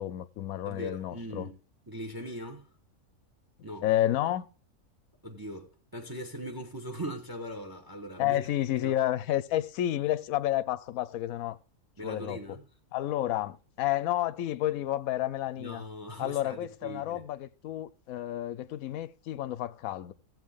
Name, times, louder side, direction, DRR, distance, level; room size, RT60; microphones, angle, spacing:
voice 1, 0.0-1.5 3.8-4.5 8.2-11.6 12.0-12.4 12.9-15.8 16.2-20.1, left 13 dB, 70° left, 1.0 m, -30 dB
voice 2, 0.6-1.6 1.9-2.7 3.6-3.9 5.2-8.5 8.7-8.9 12.0-12.7 15.6-17.2, equal, 15° right, 1.2 m, -40 dB
15.5 x 7.7 x 3.6 m
omnidirectional pair, 1.6 m